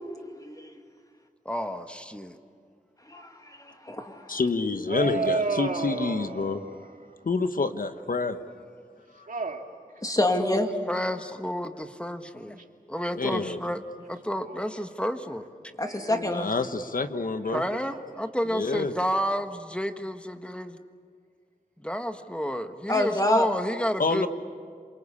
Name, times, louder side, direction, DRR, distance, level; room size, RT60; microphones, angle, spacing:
voice 1, 0.4-0.7 3.1-4.4 10.0-10.7 15.8-16.5 22.9-23.5, left 1 dB, 25° left, 4 dB, 2.6 m, -27 dB
voice 2, 1.4-2.4 10.2-10.6 10.9-12.6 12.9-13.8 14.1-15.5 17.5-20.7 21.8-24.3, equal, 5° left, 7 dB, 1.5 m, -30 dB
voice 3, 4.3-6.6 7.2-8.5 9.1-9.3 13.1-13.6 16.1-17.6 18.5-18.9 24.0-24.3, left 3 dB, 70° left, 8 dB, 1.2 m, -28 dB
voice 4, 4.9-7.3 9.1-9.7 9.9-10.1 14.4-14.6 15.8-16.3 17.5-18.0, right 3 dB, 65° right, 3 dB, 2.6 m, -32 dB
27.5 x 24.0 x 8.6 m, 2.1 s
wide cardioid pair, 65°, 15 cm